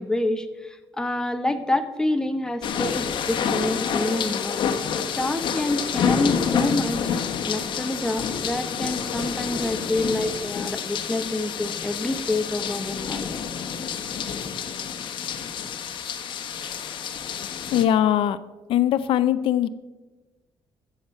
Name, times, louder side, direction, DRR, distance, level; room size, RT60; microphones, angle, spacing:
voice 1, 0.0-4.6 5.2-7.1 7.5-13.3, left 1 dB, 5° left, 7 dB, 1.0 m, -27 dB
sound 1, 2.6-17.8, left 7 dB, 60° left, 1.2 m, -28 dB
voice 2, 17.7-18.4 18.7-19.7, left 11 dB, 75° left, 13 dB, 0.5 m, -20 dB
14.5 x 7.2 x 5.7 m, 1.2 s
cardioid pair, 130°, 9 cm